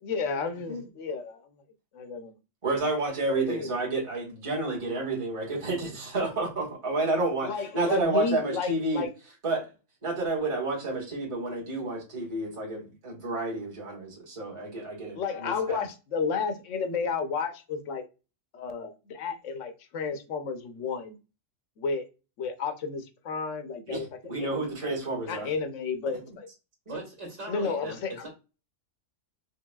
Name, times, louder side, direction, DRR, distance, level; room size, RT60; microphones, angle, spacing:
voice 1, 0.0-1.5 1.9-2.3 3.3-3.8 7.4-9.1 15.1-18.0 18.5-21.2 21.8-22.0 22.4-24.1 24.4-24.9 25.3-26.5 27.5-28.1, left 5 dB, 80° left, 1.1 m, -32 dB
voice 2, 2.6-9.0 9.4-9.7 10.0-15.8 23.9-25.5, right 2 dB, 25° right, 1.3 m, -30 dB
voice 3, 26.9-28.3, right 2 dB, 70° right, 1.9 m, -39 dB
4.6 x 3.3 x 2.2 m
omnidirectional pair, 1.3 m